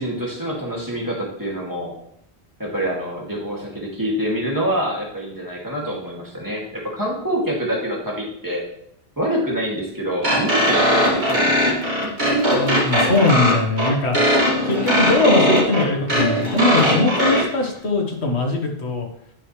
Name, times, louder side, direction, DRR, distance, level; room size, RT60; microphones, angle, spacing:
voice 1, 0.0-1.9 2.6-8.6 9.2-11.8, equal, 20° right, -4 dB, 2.4 m, -26 dB
sound 1, 10.2-17.4, equal, 45° right, 2.4 m, -19 dB
voice 2, 12.5-14.2 14.6-19.1, left 2 dB, 80° left, 2 dB, 1.7 m, -20 dB
9.7 x 6.4 x 3.3 m, 0.70 s
omnidirectional pair, 1.1 m